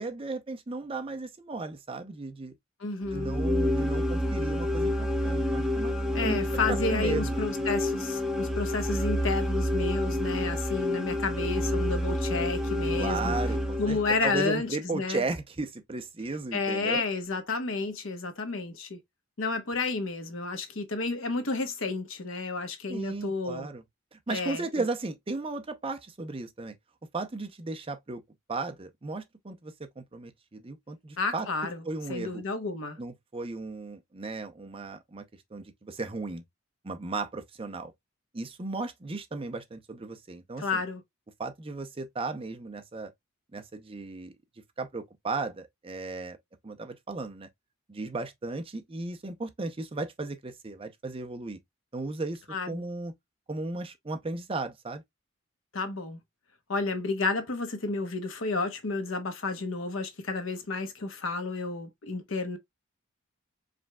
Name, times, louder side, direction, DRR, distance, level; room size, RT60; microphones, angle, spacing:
voice 1, 0.0-2.5 3.1-6.4 6.7-7.4 13.0-17.0 22.9-23.8 24.1-26.7 27.1-28.2 28.5-31.5 31.8-32.4 33.0-35.2 35.5-36.4 36.8-37.9 38.3-40.8 41.4-43.1 43.5-44.3 44.8-46.4 46.6-47.5 47.9-51.6 51.9-52.4 52.7-53.1 53.5-55.0, right 3 dB, 25° right, 0.6 m, -35 dB
voice 2, 2.8-3.3 6.1-13.4 13.8-15.2 16.5-19.0 19.4-23.7 24.3-24.8 31.2-31.8 32.1-33.0 40.6-41.0 52.5-52.8 55.7-56.2 56.7-62.6, left 3 dB, 70° left, 1.0 m, -31 dB
sound 1, 3.0-14.4, left 1 dB, 5° right, 0.8 m, -29 dB
5.0 x 3.5 x 2.2 m
head